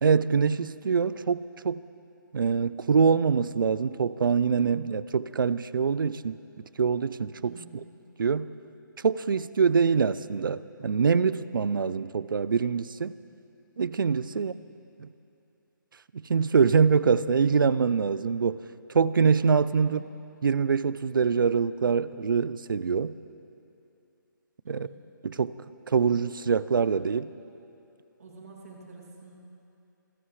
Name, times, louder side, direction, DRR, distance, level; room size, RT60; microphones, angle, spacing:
voice 1, 0.0-1.8 2.3-6.4 6.8-7.8 8.2-8.5 9.0-13.2 13.8-14.5 15.0-15.1 16.1-18.6 18.9-20.0 20.4-23.2 24.7-24.9 25.2-25.5 25.9-27.3, right 5 dB, 75° right, 17 dB, 0.5 m, -24 dB
voice 2, 7.4-7.8 14.3-14.6 19.8-20.1 24.6-25.0 28.2-29.4, right 3 dB, 45° right, -2 dB, 2.6 m, -48 dB
27.5 x 15.5 x 3.2 m, 2.7 s
hypercardioid pair, 175°, 11 cm